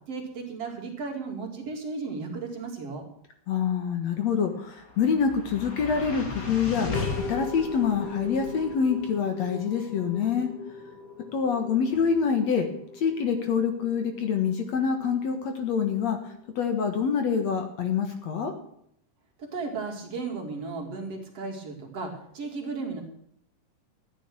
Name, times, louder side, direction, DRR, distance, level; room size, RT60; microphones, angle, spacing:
voice 1, 0.1-3.0 19.4-23.0, right 4 dB, 50° right, 2 dB, 3.0 m, -35 dB
voice 2, 3.5-6.9 7.3-10.5 11.3-12.7 12.9-18.5, left 6 dB, 60° left, 6 dB, 2.4 m, -26 dB
sound 1, 4.4-16.7, left 4 dB, 35° left, 1.8 m, -38 dB
13.0 x 10.0 x 6.1 m, 0.68 s
omnidirectional pair, 3.8 m